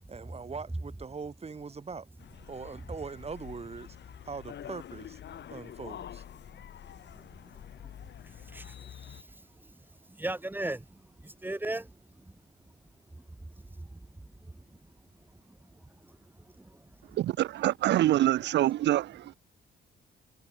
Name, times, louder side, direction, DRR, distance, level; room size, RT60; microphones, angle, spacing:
voice 1, 0.1-2.1 2.5-4.0 4.2-5.2 5.5-6.2, right 5 dB, 30° right, 2.6 m, -41 dB
sound 1, 2.2-9.2, left 10 dB, 60° left, 2.8 m, -47 dB
voice 2, 6.5-7.2 7.8-7.9 8.2-12.4 13.1-13.4 13.8-14.8 15.3-17.2, right 1 dB, 10° right, 1.2 m, -41 dB
voice 3, 17.1-19.4, right 14 dB, 60° right, 0.5 m, -25 dB
cardioid pair, 90°, 20 cm